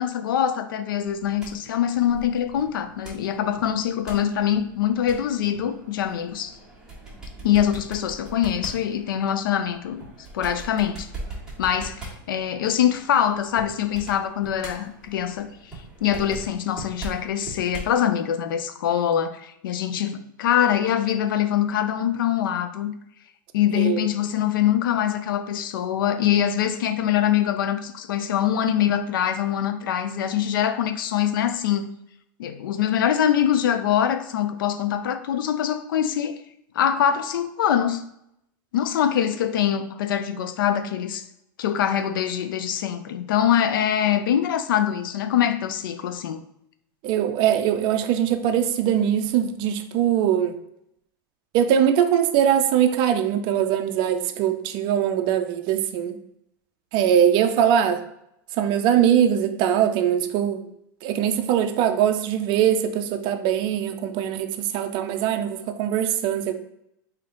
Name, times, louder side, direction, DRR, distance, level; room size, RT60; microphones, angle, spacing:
voice 1, 0.0-6.5 7.4-10.0 10.3-11.1 11.6-15.5 16.0-22.9 23.5-32.0 32.4-36.4 36.8-38.0 38.7-41.2 41.6-46.4, left 10 dB, 85° left, 0.4 m, -23 dB
sound 1, 1.0-18.0, right 2 dB, 5° right, 1.4 m, -41 dB
voice 2, 23.8-24.1 47.0-50.5 51.5-56.2 56.9-58.0 58.6-60.6 61.0-66.5, right 9 dB, 45° right, 0.5 m, -21 dB
3.4 x 2.8 x 3.8 m
supercardioid pair, 125°, 11 cm